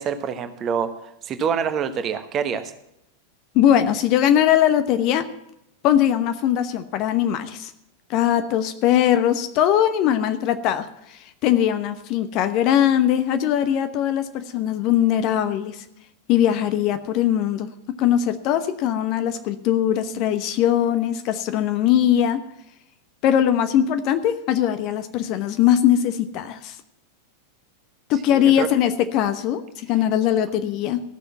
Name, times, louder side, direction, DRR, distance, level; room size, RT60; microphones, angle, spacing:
voice 1, 0.0-2.7 28.3-28.7, right 7 dB, 30° right, 9 dB, 1.2 m, -26 dB
voice 2, 3.5-5.3 5.8-7.7 8.1-15.8 16.3-22.4 23.2-26.7 28.1-31.0, left 10 dB, 40° left, 10 dB, 1.0 m, -20 dB
15.0 x 6.7 x 7.4 m, 0.81 s
figure-of-eight pair, 90°, 0 cm